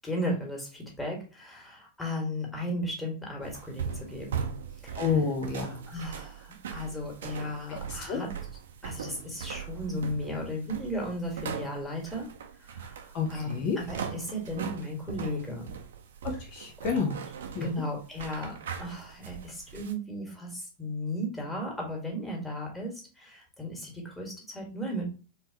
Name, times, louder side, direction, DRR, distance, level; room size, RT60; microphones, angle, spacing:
voice 1, 0.0-4.5 4.8-5.1 5.9-8.3 8.8-12.3 12.6-15.7 16.8-17.2 17.6-25.1, equal, 10° left, -1 dB, 1.8 m, -35 dB
sound 1, 3.4-19.9, right 7 dB, 60° right, 0.6 m, -40 dB
voice 2, 5.0-5.8 7.7-8.2 13.1-13.8 16.2-17.2 17.5-17.7, left 5 dB, 45° left, 2 dB, 0.7 m, -30 dB
4.5 x 3.2 x 2.8 m, 0.36 s
figure-of-eight pair, 90°, 0 cm